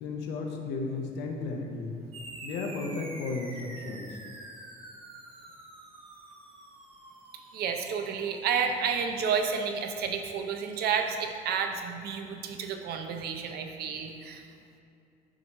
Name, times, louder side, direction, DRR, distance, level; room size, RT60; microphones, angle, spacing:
voice 1, 0.0-2.0 2.4-4.2, left 3 dB, 85° left, 1 dB, 0.8 m, -34 dB
sound 1, 2.1-11.0, right 2 dB, 30° right, 0.9 m, -48 dB
voice 2, 7.5-14.4, right 6 dB, 70° right, 5 dB, 0.6 m, -31 dB
6.2 x 3.1 x 5.3 m, 2.6 s
cardioid pair, 110°, 17 cm